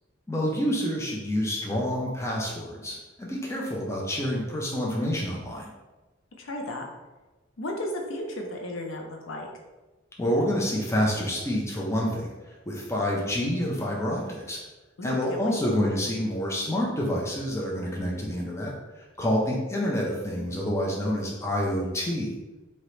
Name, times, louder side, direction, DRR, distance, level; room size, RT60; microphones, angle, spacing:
voice 1, 0.3-5.7 10.2-14.6 15.0-22.3, equal, 15° left, -3 dB, 0.5 m, -28 dB
voice 2, 6.4-6.9 7.6-9.5 15.0-15.7, left 1 dB, 80° left, 2 dB, 0.6 m, -34 dB
2.9 x 2.8 x 3.2 m, 1.2 s
head